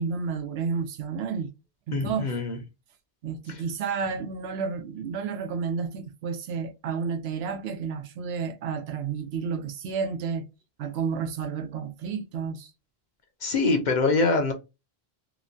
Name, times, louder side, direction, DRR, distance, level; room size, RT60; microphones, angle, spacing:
voice 1, 0.0-1.5 1.9-2.3 3.2-10.4 10.8-12.7, right 6 dB, 85° right, 0.8 m, -31 dB
voice 2, 1.9-2.6 3.5-3.6 13.4-14.5, left 3 dB, 55° left, 0.7 m, -24 dB
3.0 x 2.1 x 2.5 m
omnidirectional pair, 1.0 m